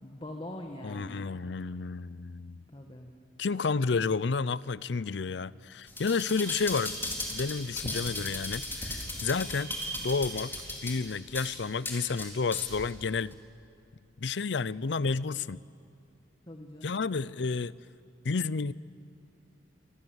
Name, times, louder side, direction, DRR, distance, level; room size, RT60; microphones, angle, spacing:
voice 1, 0.0-1.4 2.7-3.1 16.5-16.9, left 1 dB, 30° left, 3 dB, 1.8 m, -43 dB
voice 2, 0.8-2.6 3.4-7.0 7.3-10.5 10.8-13.4 14.2-15.6 16.8-17.7 18.2-18.7, left 4 dB, 70° left, 20 dB, 0.6 m, -31 dB
sound 1, 5.9-12.9 13.3-13.4, left 1 dB, 10° left, 3.9 m, -37 dB
27.5 x 24.5 x 8.1 m, 2.7 s
head